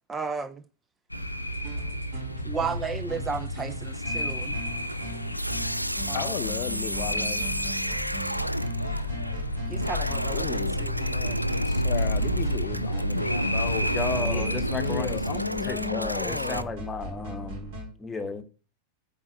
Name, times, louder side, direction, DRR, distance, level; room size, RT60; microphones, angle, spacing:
voice 1, 0.1-0.6 2.4-4.6 6.1-6.4 9.7-11.4, right 5 dB, 15° right, 0.5 m, -34 dB
sound 1, 1.1-15.3, equal, 90° left, 0.8 m, -31 dB
sound 2, 1.5-17.9, right 2 dB, 50° right, 4.1 m, -39 dB
sound 3, 5.3-16.6, equal, 90° right, 0.3 m, -32 dB
voice 2, 6.1-7.5 10.3-10.9 11.6-16.7, left 16 dB, 40° left, 0.4 m, -35 dB
voice 3, 13.9-17.7 18.0-18.4, left 3 dB, 15° left, 1.2 m, -34 dB
8.7 x 4.2 x 6.0 m
figure-of-eight pair, 90°, 0 cm